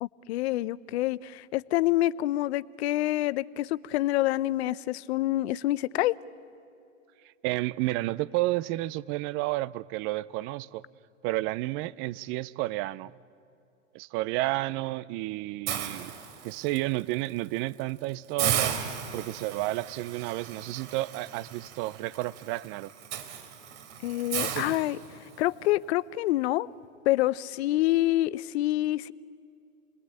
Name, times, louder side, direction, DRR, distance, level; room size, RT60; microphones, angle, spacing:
voice 1, 0.0-6.2 24.0-25.0 25.4-26.7 27.1-29.1, left 16 dB, 55° left, 0.7 m, -27 dB
voice 2, 7.4-10.8 11.2-13.1 13.9-16.1 16.4-18.8 19.1-22.9 24.5-24.7, right 18 dB, 30° right, 0.5 m, -31 dB
Hiss, 15.7-16.8 17.3-17.5 17.8-17.9 18.4-25.5, right 9 dB, 60° right, 3.3 m, -35 dB
28.0 x 20.5 x 8.9 m
hypercardioid pair, 115°, 39 cm